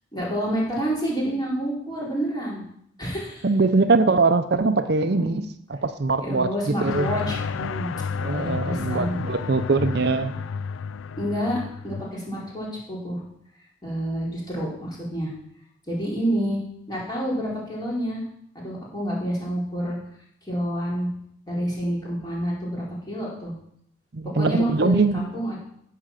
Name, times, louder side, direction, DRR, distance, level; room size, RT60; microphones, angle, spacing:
voice 1, 0.1-2.6 3.0-3.5 5.0-5.4 6.2-7.9 8.3-9.1 11.2-13.2 13.8-15.3 15.9-16.6 16.9-18.2 18.5-20.0 20.5-21.1 21.5-23.5 24.4-25.6, equal, 20° left, -5 dB, 4.5 m, -28 dB
voice 2, 3.4-7.1 8.2-10.3 24.1-25.2, right 3 dB, 55° right, 10 dB, 0.6 m, -22 dB
sound 1, 6.9-12.1, left 5 dB, 85° left, 0.4 m, -31 dB
14.0 x 6.7 x 7.5 m, 0.71 s
head